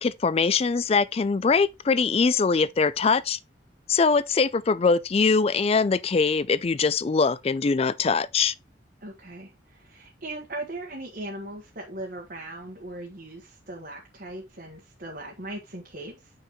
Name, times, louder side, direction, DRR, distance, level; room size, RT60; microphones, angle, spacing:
voice 1, 0.0-3.4 3.9-8.5, left 4 dB, 30° left, 0.4 m, -22 dB
voice 2, 9.0-16.3, right 1 dB, 50° right, 1.5 m, -39 dB
8.0 x 5.9 x 3.1 m
head